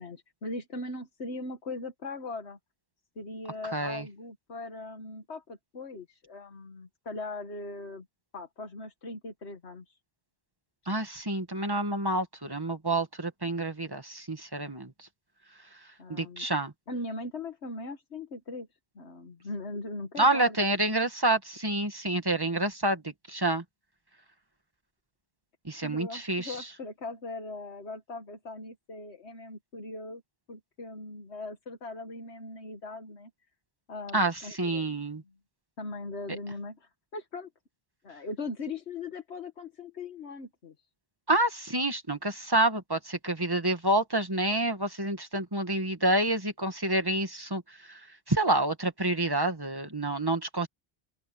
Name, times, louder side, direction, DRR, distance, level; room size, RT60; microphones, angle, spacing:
voice 1, 0.0-2.6 3.2-8.1 8.3-10.0 16.0-16.5 16.9-18.7 19.0-20.6 25.8-30.2 30.5-33.3 33.9-35.3 35.8-37.5 38.0-40.7, left 2 dB, 90° left, 1.9 m, -40 dB
voice 2, 3.7-4.1 10.9-14.9 16.1-16.7 20.2-23.6 25.7-26.5 34.1-35.2 41.3-47.6 47.9-48.0 48.3-50.7, right 2 dB, 20° right, 2.0 m, -28 dB
open air
omnidirectional pair, 1.1 m